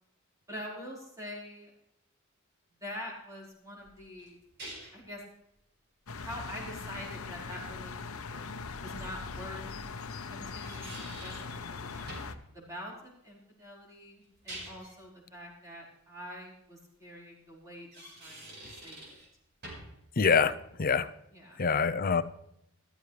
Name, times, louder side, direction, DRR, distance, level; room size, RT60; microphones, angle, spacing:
voice 1, 0.5-1.7 2.8-4.4 4.9-5.2 6.2-8.4 8.8-9.6 10.3-12.1 12.5-17.9 18.2-19.2 21.3-21.6, left 1 dB, 15° right, -3 dB, 4.7 m, -45 dB
sound 1, 3.8-5.1 8.3-8.4 10.3-11.5 12.1-12.4 14.2-15.0 17.7-19.3 19.6-20.0, right 1 dB, 50° right, 5.0 m, -46 dB
sound 2, 6.1-12.4, left 4 dB, 75° left, 0.9 m, -41 dB
voice 2, 20.2-20.5 20.8-21.1 21.6-22.2, left 5 dB, 40° left, 12 dB, 0.6 m, -24 dB
14.5 x 13.5 x 3.3 m, 0.76 s
head